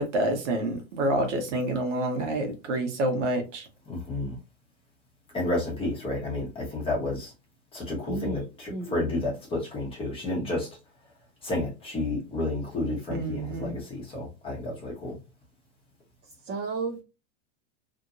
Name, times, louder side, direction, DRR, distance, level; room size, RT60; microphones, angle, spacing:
voice 1, 0.0-3.7 13.1-13.7, right 1 dB, 70° right, 4 dB, 1.2 m, -28 dB
voice 2, 3.9-4.4 5.3-7.3 7.7-10.7 11.4-15.1, left 2 dB, 15° left, -3 dB, 1.0 m, -31 dB
voice 3, 8.1-9.1 16.4-17.0, right 4 dB, 30° right, -3 dB, 0.7 m, -33 dB
2.9 x 2.5 x 2.5 m, 0.28 s
supercardioid pair, 150°, 37 cm